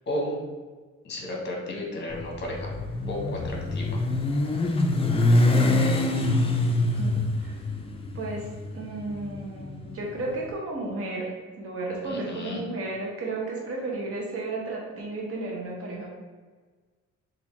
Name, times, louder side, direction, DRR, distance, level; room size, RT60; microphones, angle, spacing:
voice 1, 0.1-0.4 1.0-2.7 3.1-4.0 12.0-12.6, left 1 dB, 35° left, -1 dB, 1.0 m, -33 dB
Motorcycle, 2.1-10.3, left 2 dB, 20° left, 0.4 m, -25 dB
voice 2, 6.4-7.6 8.1-16.1, right 2 dB, 50° right, -2 dB, 0.9 m, -34 dB
3.4 x 2.6 x 3.1 m, 1.4 s
cardioid pair, 90°, 30 cm